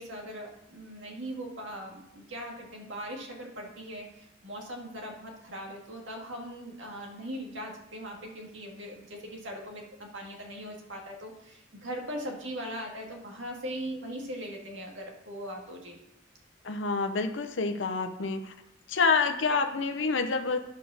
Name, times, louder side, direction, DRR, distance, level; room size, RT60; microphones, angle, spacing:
voice 1, 0.0-16.0, equal, 90° right, 0 dB, 2.2 m, -40 dB
voice 2, 16.6-18.5 18.9-20.6, left 4 dB, 75° left, 6 dB, 0.7 m, -27 dB
10.0 x 5.1 x 6.4 m, 0.84 s
head